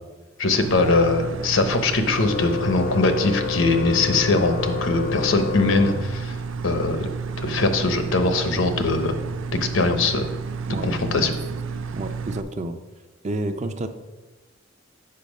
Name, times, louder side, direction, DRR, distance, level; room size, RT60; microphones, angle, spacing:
voice 1, 0.4-6.4 6.6-7.1 7.4-9.1 9.5-10.3 10.8-11.3, left 3 dB, 85° left, 7 dB, 0.9 m, -21 dB
sound 1, 0.6-12.4, right 5 dB, 90° right, 0.4 m, -31 dB
Organ, 2.1-6.7, left 7 dB, 50° left, 0.4 m, -30 dB
voice 2, 10.7-11.3 11.9-12.8 13.2-13.9, right 2 dB, 35° right, 8 dB, 0.5 m, -30 dB
6.8 x 5.6 x 5.2 m, 1.2 s
head